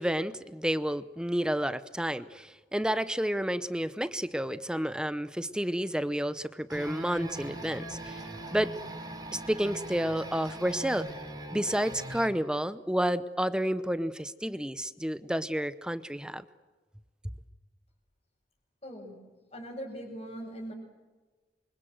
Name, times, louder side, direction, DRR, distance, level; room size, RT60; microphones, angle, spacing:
voice 1, 0.0-8.2 8.5-8.7 9.3-11.1 11.5-16.4, equal, 5° right, 13 dB, 0.7 m, -30 dB
sound 1, 6.7-12.3, right 1 dB, 20° right, 5.1 m, -41 dB
voice 2, 18.8-19.2 19.5-20.7, equal, 35° left, -5 dB, 5.9 m, -40 dB
27.5 x 25.0 x 7.8 m, 1.3 s
head